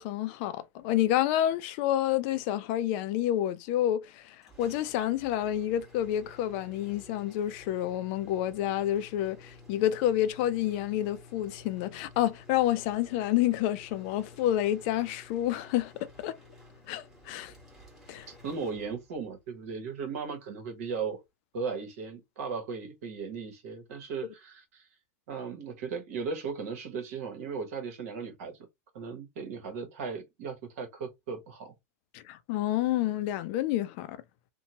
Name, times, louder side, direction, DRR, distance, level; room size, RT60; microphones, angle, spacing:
voice 1, 0.0-16.4 16.9-17.5 18.1-18.3 32.1-34.2, left 12 dB, 50° left, 0.4 m, -29 dB
sound 1, 4.4-19.4, left 2 dB, 5° right, 1.4 m, -53 dB
voice 2, 18.3-21.2 21.5-24.9 25.3-28.5 28.9-31.7, right 5 dB, 65° right, 1.1 m, -37 dB
2.8 x 2.2 x 2.8 m
hypercardioid pair, 115°, 8 cm